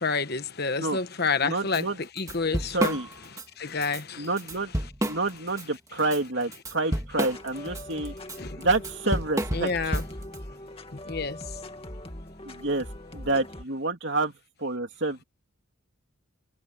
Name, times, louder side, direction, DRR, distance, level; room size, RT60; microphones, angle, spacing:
voice 1, 0.0-1.9 2.2-3.0 3.6-4.3 8.4-8.6 9.5-10.0 11.1-11.4, left 4 dB, 50° left, 1.2 m, -28 dB
voice 2, 1.4-2.0 2.7-3.1 4.2-4.7 5.0-8.1 8.6-9.9 12.4-12.9 13.1-14.3 14.6-15.2, right 2 dB, 55° right, 3.1 m, -28 dB
Drum kit / Drum, 1.7-1.8 2.2-3.5 3.8-4.0 4.4-5.6 6.0-10.4, right 1 dB, 15° right, 1.7 m, -30 dB
sound 1, 7.2-13.6, left 1 dB, 25° left, 2.2 m, -41 dB
head